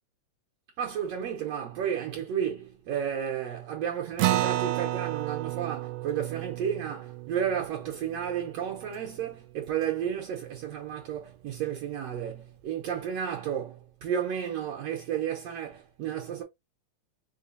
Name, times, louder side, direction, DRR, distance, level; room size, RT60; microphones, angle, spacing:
voice 1, 0.8-16.4, right 8 dB, 65° right, 1.7 m, -32 dB
Acoustic guitar, 4.2-9.1, right 15 dB, 85° right, 2.1 m, -32 dB
4.7 x 3.8 x 2.6 m
omnidirectional pair, 3.5 m